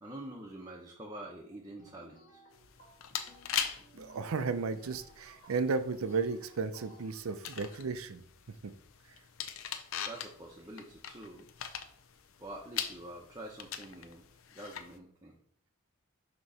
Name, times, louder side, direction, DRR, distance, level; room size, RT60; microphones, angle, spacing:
voice 1, 0.0-2.4 10.0-11.5 12.4-14.3 14.5-15.4, right 1 dB, 15° right, -2 dB, 0.7 m, -46 dB
sound 1, 1.8-7.1, equal, 40° left, 1.8 m, -59 dB
sound 2, 2.5-15.0, left 8 dB, 70° left, 0.6 m, -42 dB
voice 2, 3.9-8.2 8.6-8.7, right 4 dB, 85° right, 11 dB, 0.5 m, -34 dB
6.2 x 3.0 x 5.5 m, 0.63 s
head